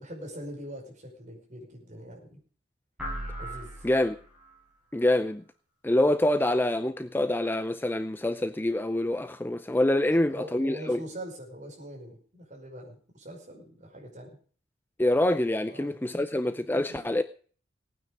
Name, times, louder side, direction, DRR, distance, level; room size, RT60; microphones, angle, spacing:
voice 1, 0.0-2.4 3.4-3.9 10.0-14.4 15.7-16.2 16.7-17.0, right 1 dB, 40° right, 5.4 m, -43 dB
sound 1, 3.0-4.6, equal, 5° right, 6.9 m, -38 dB
voice 2, 3.8-4.2 4.9-5.4 5.8-11.0 15.0-17.2, left 1 dB, 10° left, 0.5 m, -26 dB
18.0 x 9.5 x 5.2 m
head